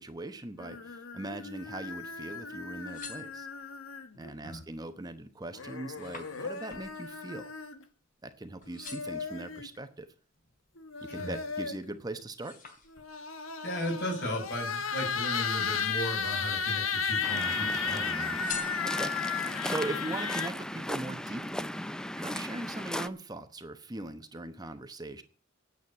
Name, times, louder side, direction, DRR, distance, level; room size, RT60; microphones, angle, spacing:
voice 1, 0.0-3.5 4.1-7.5 8.2-10.1 11.1-12.6 18.8-21.9 22.2-25.2, right 2 dB, 20° right, 8 dB, 1.0 m, -40 dB
sound 1, 0.6-4.3 5.5-7.8 8.7-9.7 10.8-11.9 12.9-20.5, left 6 dB, 90° left, 1.3 m, -35 dB
sound 2, 2.7-3.9 4.4-4.9 5.2-8.3 8.6-9.3 9.9-11.4 11.8-13.4 14.3-15.4 16.0-16.8 17.1-17.8 18.3-19.4 19.9-20.0, left 5 dB, 40° left, 3.1 m, -48 dB
voice 2, 13.6-18.4, equal, 60° left, 1 dB, 6.5 m, -36 dB
Waves surf, 17.2-23.1, left 1 dB, 5° left, 0.5 m, -36 dB
9.4 x 8.0 x 8.6 m, 0.42 s
head